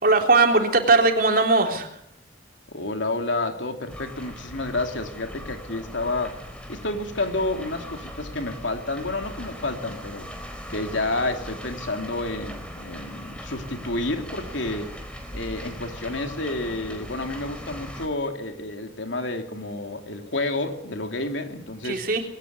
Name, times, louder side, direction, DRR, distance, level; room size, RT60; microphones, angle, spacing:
voice 1, 0.0-2.0 21.8-22.2, right 3 dB, 50° right, 3 dB, 3.5 m, -19 dB
voice 2, 2.7-6.4 6.7-10.3 10.7-14.9 15.3-22.0, left 2 dB, 80° left, 5 dB, 3.1 m, -30 dB
sound 1, 3.9-18.1, equal, 5° left, 4.3 m, -39 dB
21.0 x 18.0 x 8.2 m, 0.76 s
head